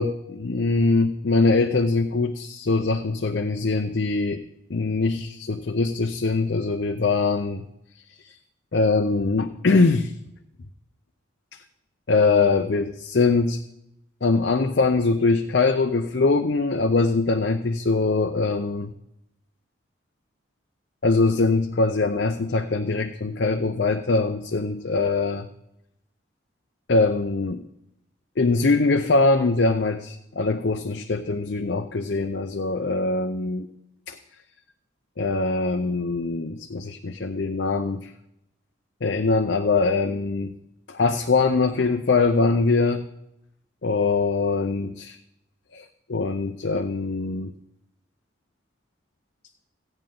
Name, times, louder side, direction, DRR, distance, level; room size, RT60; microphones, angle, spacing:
voice 1, 0.0-4.4 4.7-7.6 8.2-8.3 8.7-10.1 12.1-13.6 14.2-18.9 21.0-25.5 26.9-27.6 28.4-33.7 34.1-34.2 35.2-38.1 39.0-40.5 40.9-43.0 43.8-44.9 45.7-47.5, left 3 dB, 60° left, 5 dB, 0.6 m, -22 dB
16.0 x 8.9 x 3.8 m, 0.83 s
head